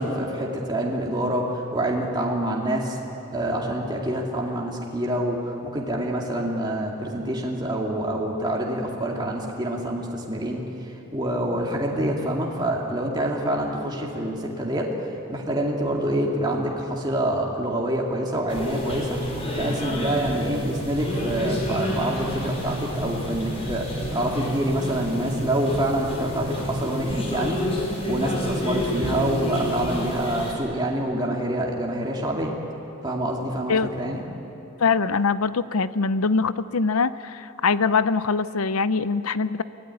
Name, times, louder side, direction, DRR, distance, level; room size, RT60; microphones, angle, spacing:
voice 1, 0.0-3.0 3.3-10.6 11.1-14.9 15.3-19.2 19.5-23.9 24.1-27.6 28.1-32.5 33.0-34.2, right 1 dB, 20° right, -2 dB, 2.4 m, -26 dB
sound 1, 18.5-30.5, equal, 30° left, 4.4 m, -29 dB
voice 2, 34.8-39.6, left 4 dB, 80° left, 15 dB, 0.7 m, -23 dB
24.5 x 17.0 x 9.7 m, 3.0 s
head